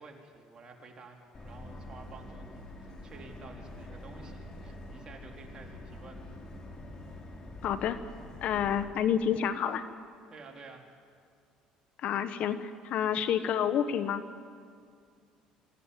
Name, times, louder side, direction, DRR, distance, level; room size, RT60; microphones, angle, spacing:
voice 1, 0.0-6.4 10.3-10.9, right 4 dB, 35° right, 2 dB, 3.8 m, -51 dB
Subway metro underground, 1.3-8.8, left 1 dB, 35° left, 4.2 m, -46 dB
voice 2, 7.6-8.0 8.4-9.8 12.0-14.2, left 9 dB, 65° left, 12 dB, 1.2 m, -29 dB
24.0 x 15.0 x 9.7 m, 2.2 s
supercardioid pair, 90°, 2 cm